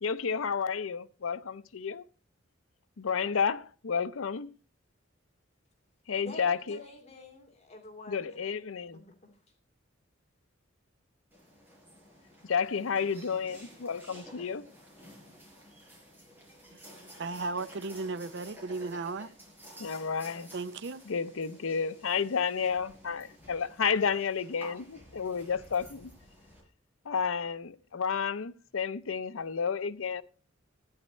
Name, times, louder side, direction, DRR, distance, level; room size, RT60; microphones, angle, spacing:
voice 1, 0.0-2.0 3.0-4.5 6.1-6.8 8.1-9.0 12.5-14.7 19.8-20.5 21.1-26.1 27.1-30.2, left 6 dB, 85° left, 0.6 m, -31 dB
voice 2, 6.2-8.4 8.9-9.1, left 2 dB, 35° left, 2.6 m, -47 dB
sound 1, 11.3-26.6, equal, 10° right, 4.8 m, -52 dB
voice 3, 16.7-19.3 20.5-21.0, right 3 dB, 60° right, 0.6 m, -36 dB
13.0 x 10.0 x 4.3 m
head